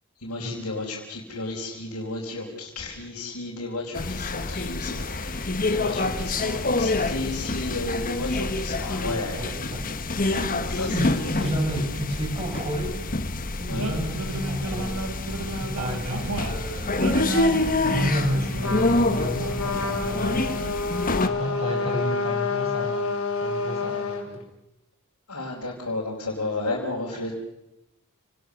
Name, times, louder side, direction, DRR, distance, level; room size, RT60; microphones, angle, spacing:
voice 1, 0.2-9.5 10.7-11.0 11.4-11.5 13.7-13.9 25.3-27.3, left 2 dB, 85° left, -4 dB, 4.7 m, -33 dB
sound 1, 3.9-21.3, left 2 dB, 40° left, 1.3 m, -27 dB
voice 2, 9.1-9.9 10.2-13.0 13.5-15.0 15.6-20.7 21.2-23.1 23.4-24.4, equal, 30° right, 1 dB, 7.5 m, -31 dB
sound 2, 13.7-20.7, right 2 dB, 80° right, 2.2 m, -34 dB
Trumpet, 18.6-24.2, left 4 dB, 65° left, 5.3 m, -28 dB
29.5 x 19.5 x 6.5 m, 0.88 s
head